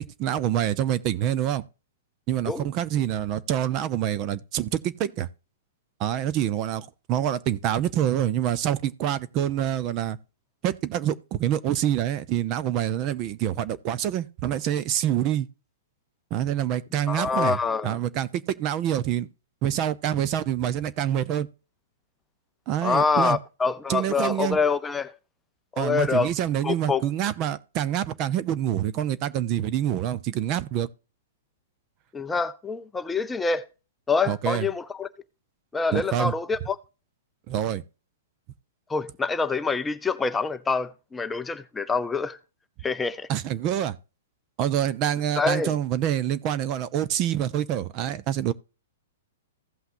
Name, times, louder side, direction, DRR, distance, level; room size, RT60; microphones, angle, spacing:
voice 1, 0.0-1.6 2.3-5.3 6.0-10.2 10.6-15.5 16.3-19.3 19.6-21.5 22.7-23.4 23.9-24.6 25.8-30.9 34.3-34.7 35.9-36.3 37.5-37.8 43.3-44.0 44.6-48.5, right 11 dB, 35° right, 0.6 m, -26 dB
voice 2, 17.1-18.0 22.8-25.1 25.7-26.3 26.6-27.0 32.1-33.6 34.1-35.1 35.7-36.8 38.9-42.4 42.8-43.3 45.4-45.7, left 4 dB, 10° left, 0.5 m, -26 dB
16.0 x 5.7 x 2.6 m
hypercardioid pair, 140°, 0 cm